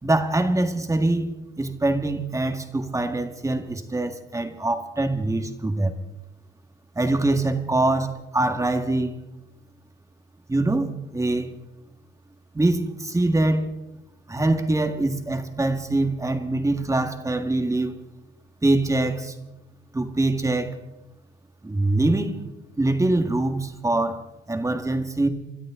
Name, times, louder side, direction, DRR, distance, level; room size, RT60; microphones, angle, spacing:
voice 1, 0.0-1.3 1.6-5.9 7.0-9.1 10.5-11.5 12.5-13.7 14.3-18.0 18.6-19.3 19.9-20.8 21.6-22.4 22.8-25.3, right 2 dB, 15° right, 6 dB, 1.8 m, -24 dB
27.0 x 13.0 x 3.8 m, 0.95 s
cardioid pair, 90°, 20 cm